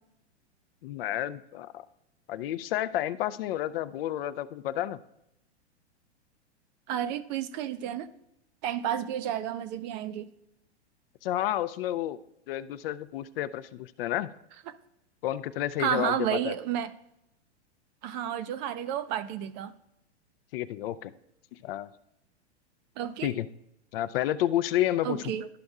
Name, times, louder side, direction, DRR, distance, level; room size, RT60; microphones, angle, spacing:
voice 1, 0.8-1.8 2.3-5.0 11.2-12.2 12.5-14.3 15.2-16.5 20.5-21.1 21.5-21.9 23.2-23.5 23.9-25.2, left 13 dB, 55° left, 14 dB, 0.4 m, -30 dB
voice 2, 6.9-8.1 8.6-10.3 15.8-16.9 18.0-19.7 23.0-23.3 25.0-25.5, right 10 dB, 40° right, 13 dB, 0.5 m, -31 dB
12.5 x 5.2 x 2.4 m, 0.82 s
hypercardioid pair, 120°, 34 cm